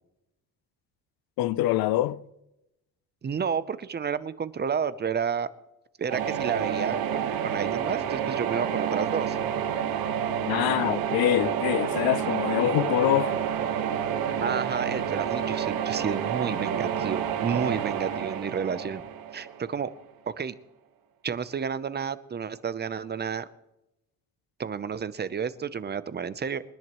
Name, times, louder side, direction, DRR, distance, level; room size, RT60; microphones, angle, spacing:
voice 1, 1.4-2.2 10.4-13.4, left 14 dB, 85° left, 0.6 m, -25 dB
voice 2, 3.2-5.5 6.0-9.4 14.4-19.1 19.3-19.9 20.3-20.6 21.2-23.5 24.6-26.6, right 6 dB, 30° right, 0.7 m, -31 dB
sound 1, 6.1-19.9, right 8 dB, 80° right, 1.4 m, -29 dB
28.0 x 10.5 x 3.1 m
cardioid pair, 115°, 35 cm